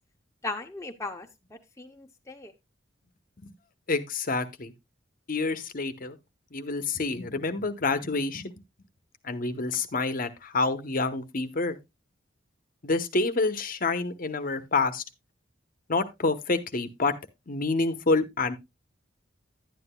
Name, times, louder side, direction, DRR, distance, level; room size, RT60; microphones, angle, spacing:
voice 1, 0.4-2.5, left 3 dB, 15° left, 0.7 m, -38 dB
voice 2, 3.9-4.7 5.3-6.2 6.5-8.5 9.2-11.8 12.8-15.0 15.9-17.1 17.5-18.6, left 3 dB, 45° left, 0.9 m, -28 dB
10.5 x 9.8 x 2.2 m
head